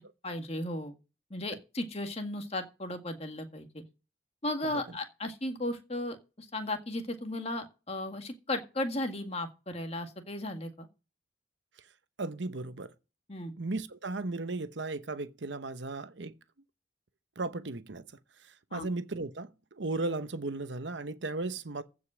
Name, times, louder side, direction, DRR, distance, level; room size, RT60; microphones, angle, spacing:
voice 1, 0.2-0.9 1.3-3.8 4.4-10.9 13.3-13.5 18.7-18.9, left 1 dB, 35° left, 1.9 m, -35 dB
voice 2, 12.2-12.9 13.6-16.4 17.4-18.0 18.7-21.8, right 2 dB, 70° right, 0.9 m, -35 dB
15.0 x 5.4 x 6.2 m
head